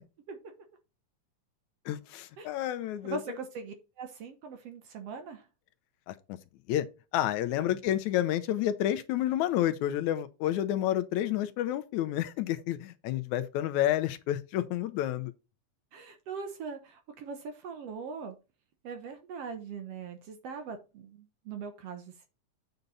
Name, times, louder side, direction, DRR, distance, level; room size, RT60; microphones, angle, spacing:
voice 1, 1.9-3.2 6.1-6.2 6.7-6.9 7.1-15.3, left 12 dB, 80° left, 2.0 m, -29 dB
voice 2, 3.0-5.5 7.6-7.8 15.9-18.4 18.8-22.3, right 5 dB, 65° right, 1.9 m, -41 dB
8.1 x 5.3 x 4.0 m
omnidirectional pair, 3.5 m